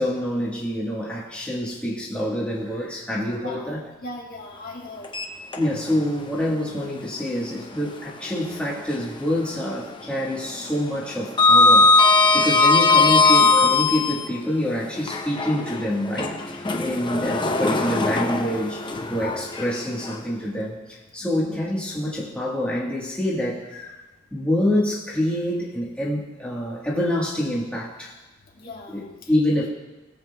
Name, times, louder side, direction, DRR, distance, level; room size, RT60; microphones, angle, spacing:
voice 1, 0.0-3.8 5.6-11.9 12.3-23.8 24.3-28.1 28.9-29.7, left 1 dB, 5° left, -5 dB, 1.3 m, -26 dB
voice 2, 3.4-3.8 4.0-5.1 23.7-24.0 28.6-29.0 29.2-29.3, left 2 dB, 45° left, -2 dB, 1.7 m, -38 dB
Sliding door, 5.0-6.0 6.4-6.5 8.2-9.3 9.6-9.9 10.2-14.3 15.0-20.2, left 3 dB, 25° left, 0.6 m, -20 dB
17.0 x 7.5 x 2.2 m, 1.1 s
head